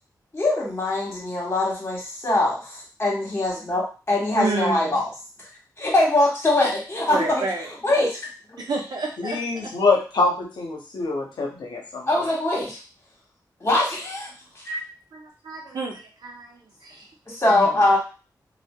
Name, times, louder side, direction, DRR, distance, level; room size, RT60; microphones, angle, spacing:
voice 1, 0.3-5.1 5.8-8.2 8.5-8.6 12.1-12.8 13.6-14.3 14.5-14.8 17.3-18.0, left 2 dB, 35° left, -3 dB, 1.4 m, -23 dB
voice 2, 4.3-4.9 7.1-7.7 8.6-9.7 15.1-17.0 17.5-17.7, right 3 dB, 70° right, 0 dB, 0.7 m, -30 dB
voice 3, 9.2-12.3, left 3 dB, 85° left, 0 dB, 0.7 m, -25 dB
2.6 x 2.3 x 2.2 m, 0.34 s
cardioid pair, 45°, 7 cm